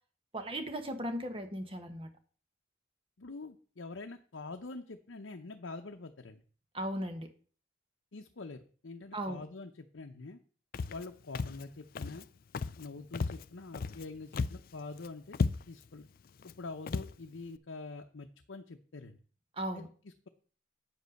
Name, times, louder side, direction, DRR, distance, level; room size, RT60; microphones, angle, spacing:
voice 1, 0.3-2.1 6.7-7.3 9.1-9.4 19.6-19.9, right 1 dB, 25° right, 6 dB, 1.2 m, -37 dB
voice 2, 3.2-6.4 8.1-10.4 10.9-12.3 12.8-15.4 15.7-16.1 16.4-19.2 19.7-20.3, left 3 dB, 75° left, 4 dB, 0.7 m, -45 dB
Walk footsteps, 10.7-11.1 11.3-11.6 11.9-12.2 12.5-12.9 13.1-14.0 14.3-14.7 15.0-15.1 15.3-15.9 16.4-16.5 16.9-17.1, left 4 dB, 45° left, 0.3 m, -34 dB
8.8 x 5.3 x 6.4 m, 0.42 s
head